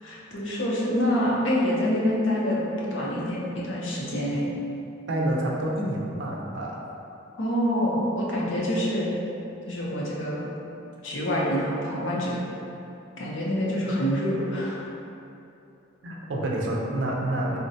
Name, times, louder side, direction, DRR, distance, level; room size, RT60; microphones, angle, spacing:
voice 1, 0.0-4.5 7.4-9.1 9.7-10.5 11.0-12.4 13.2-14.8, equal, 65° left, -5 dB, 0.6 m, -26 dB
voice 2, 5.1-6.8 16.0-17.6, right 1 dB, 60° right, -2 dB, 0.4 m, -28 dB
3.8 x 2.1 x 2.6 m, 2.7 s
head